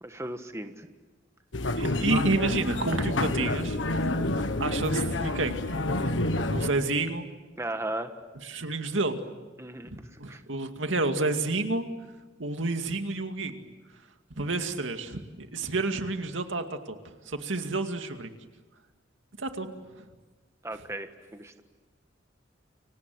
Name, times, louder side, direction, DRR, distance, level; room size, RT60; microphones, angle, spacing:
voice 1, 0.0-0.9 7.6-8.1 9.6-10.4 14.5-14.7 20.6-21.6, right 1 dB, 15° right, 7 dB, 1.4 m, -36 dB
sound 1, 1.5-6.7, left 2 dB, 75° left, 1.6 m, -28 dB
voice 2, 1.8-3.8 4.6-5.6 6.5-7.3 8.4-9.2 9.9-11.9 12.4-13.7 14.4-16.9 17.3-18.3 19.4-20.1, right 3 dB, 85° right, 6 dB, 2.3 m, -30 dB
30.0 x 25.0 x 7.9 m, 1.2 s
head